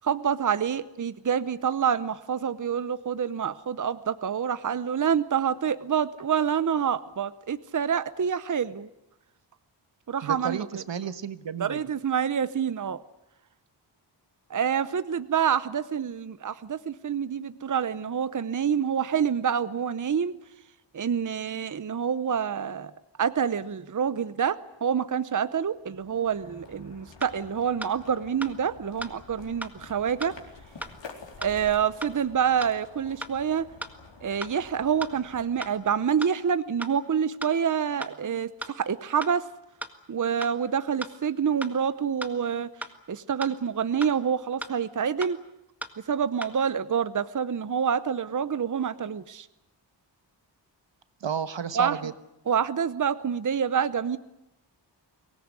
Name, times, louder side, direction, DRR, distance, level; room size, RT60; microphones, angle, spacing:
voice 1, 0.0-8.9 10.1-10.8 11.6-13.0 14.5-20.3 20.9-22.9 23.2-30.3 31.4-33.7 34.2-39.4 40.1-42.7 43.1-45.4 46.1-49.5 51.7-52.1 52.5-54.2, right 7 dB, 45° right, 14 dB, 0.8 m, -27 dB
voice 2, 10.2-11.8 51.2-52.1, right 7 dB, 80° right, 12 dB, 1.4 m, -32 dB
sound 1, 25.6-36.4, left 4 dB, 90° left, 4.2 m, -49 dB
sound 2, 27.2-27.3 27.8-27.9 28.4-28.5 29.0-29.1 29.6-29.7 30.2-30.3 30.8-30.9 31.4-31.5 32.0-32.1 32.6-32.7 33.2-33.3 33.8-33.9 34.4-34.5 35.0-35.1 35.6-35.7 36.2-36.3 36.8-36.9 37.4-37.5 38.0-38.1 38.6-38.7 39.2-39.3 39.8-39.9 40.4-40.5 41.0-41.1 41.6-41.7 42.2-42.3 42.8-42.9 43.4-43.5 44.0-44.1 44.6-44.7 45.2-45.3 45.8-45.9 46.4-46.5, equal, 5° right, 1.7 m, -36 dB
24.0 x 19.0 x 9.6 m, 0.92 s
wide cardioid pair, 130°, 44 cm